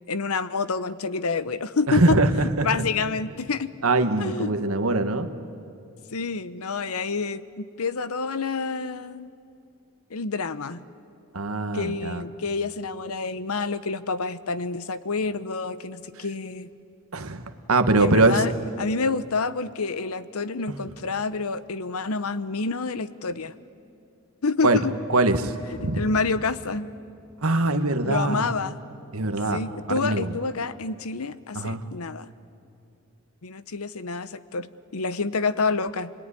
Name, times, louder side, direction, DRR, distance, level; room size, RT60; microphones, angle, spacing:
voice 1, 0.1-3.7 4.2-4.7 6.1-9.3 10.1-10.8 11.7-16.7 18.0-18.5 18.8-23.5 24.4-24.9 25.8-26.9 28.0-28.8 29.5-32.3 33.4-36.1, left 4 dB, 85° left, 14 dB, 0.9 m, -28 dB
voice 2, 1.9-2.7 3.8-5.3 11.3-12.2 17.1-18.4 24.6-24.8 25.1-25.5 25.8-26.1 27.4-28.5 29.1-29.6 29.9-30.4 31.5-31.8, right 2 dB, 80° right, 8 dB, 1.5 m, -22 dB
26.0 x 21.0 x 9.9 m, 2.6 s
head